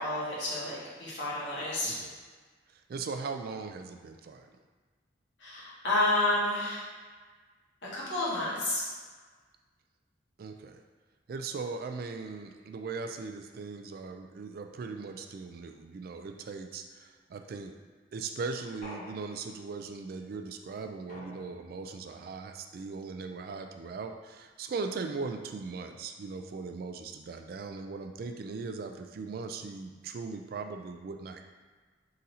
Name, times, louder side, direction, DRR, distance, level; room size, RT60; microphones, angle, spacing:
voice 1, 0.0-1.9 5.4-6.8 7.9-8.8, left 2 dB, 75° left, -7 dB, 1.4 m, -30 dB
voice 2, 1.8-2.2 2.9-4.5 10.4-10.8 11.3-17.7 18.1-31.5, right 4 dB, 55° right, 5 dB, 0.3 m, -39 dB
sound 1, 18.8-19.8 21.1-21.9, left 1 dB, 45° left, 1.1 m, -48 dB
3.8 x 2.7 x 4.1 m, 1.4 s
head